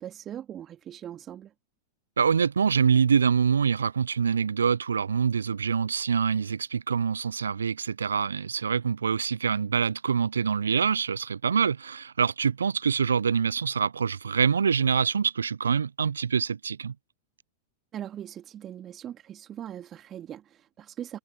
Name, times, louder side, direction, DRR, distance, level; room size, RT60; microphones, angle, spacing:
voice 1, 0.0-1.5 17.9-21.2, right 10 dB, 30° right, 2.2 m, -40 dB
voice 2, 2.2-16.9, right 6 dB, 75° right, 0.5 m, -25 dB
figure-of-eight pair, 95°, 0 cm